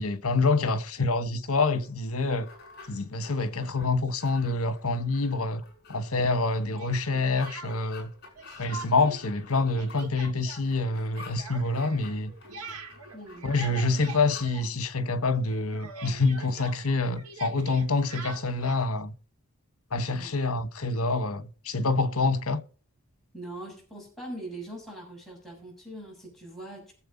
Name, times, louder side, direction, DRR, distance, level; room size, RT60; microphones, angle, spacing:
voice 1, 0.0-2.5 2.9-5.6 5.9-8.1 8.6-12.3 13.4-19.1 19.9-22.6, left 3 dB, 75° left, 1.4 m, -27 dB
sound 1, 1.8-14.5, left 3 dB, 45° left, 6.3 m, -50 dB
Speech, 6.7-8.1 8.4-9.2 9.5-15.2 15.4-18.9, right 3 dB, 85° right, 2.3 m, -44 dB
voice 2, 13.1-13.5 20.1-20.3 23.3-26.9, right 1 dB, ahead, 7.0 m, -42 dB
21.0 x 7.8 x 4.0 m
head